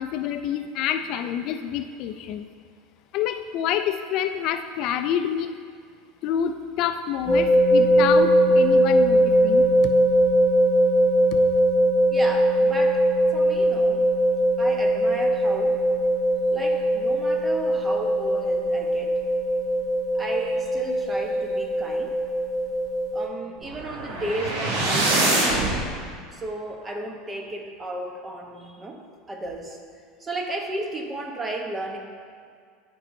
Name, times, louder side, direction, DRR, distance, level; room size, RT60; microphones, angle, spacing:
voice 1, 0.0-2.5 3.1-5.5 6.2-9.9 11.3-11.4, left 9 dB, 55° left, 9 dB, 0.3 m, -27 dB
sound 1, 7.3-23.3, right 1 dB, ahead, 1.4 m, -21 dB
voice 2, 12.1-13.0 13.3-14.0 14.6-15.8 16.5-19.1 20.1-22.1 23.1-25.7 26.3-29.0 29.3-29.8 30.2-32.0, right 1 dB, 20° right, 2 dB, 0.9 m, -34 dB
sound 2, 23.6-25.8, right 2 dB, 60° right, 1.6 m, -24 dB
12.0 x 5.4 x 2.6 m, 2.1 s
supercardioid pair, 130°, 0 cm